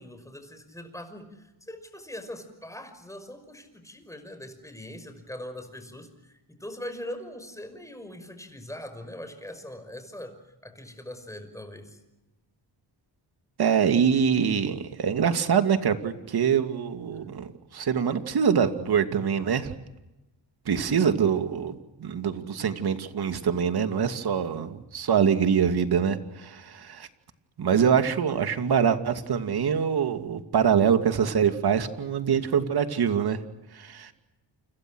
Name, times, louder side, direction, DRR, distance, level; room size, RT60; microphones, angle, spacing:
voice 1, 0.0-10.3 10.6-12.0, left 1 dB, 5° left, 8 dB, 5.7 m, -41 dB
voice 2, 13.6-19.7 20.7-27.1 27.6-33.4 33.7-34.1, right 7 dB, 55° right, 7 dB, 2.6 m, -24 dB
29.5 x 26.5 x 6.4 m, 1.0 s
cardioid pair, 110°, 45 cm